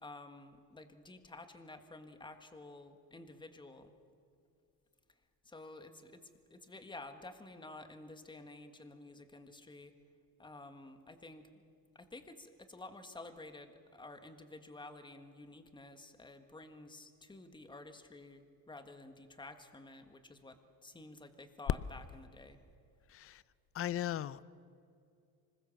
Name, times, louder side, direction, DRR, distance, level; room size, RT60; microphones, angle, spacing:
voice 1, 0.0-3.9 5.4-6.2 6.5-9.9 10.4-11.5 11.9-22.6, left 2 dB, 10° left, 1.7 m, -51 dB
voice 2, 23.1-23.4 23.7-24.4, left 11 dB, 35° left, 0.6 m, -37 dB
25.5 x 21.0 x 7.3 m
cardioid pair, 135°, 40 cm